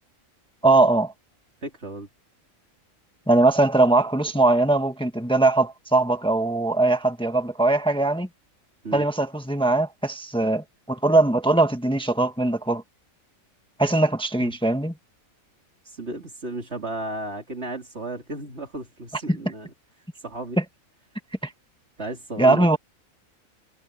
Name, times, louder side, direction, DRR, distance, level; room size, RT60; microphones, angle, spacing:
voice 1, 0.6-1.1 3.3-8.3 8.9-12.8 13.8-14.9 20.6-20.7 21.4-21.5 22.4-22.8, right 2 dB, 5° left, 1.4 m, -20 dB
voice 2, 1.6-2.1 8.8-9.0 14.4-14.5 15.8-19.7 20.2-20.6 22.0-22.8, right 2 dB, 50° right, 3.5 m, -34 dB
omnidirectional pair, 1.4 m